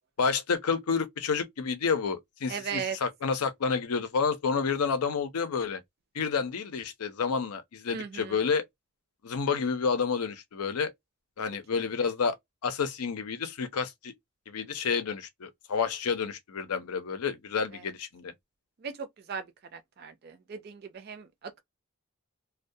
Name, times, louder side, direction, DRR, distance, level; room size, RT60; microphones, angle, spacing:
voice 1, 0.2-5.8 6.1-8.6 9.2-10.9 11.4-12.4 12.6-14.1 14.5-18.3, left 5 dB, 90° left, 0.5 m, -29 dB
voice 2, 2.5-3.0 7.9-8.4 17.7-17.8 18.8-19.4 19.7-21.6, right 6 dB, 45° right, 0.4 m, -38 dB
2.2 x 2.1 x 2.6 m
head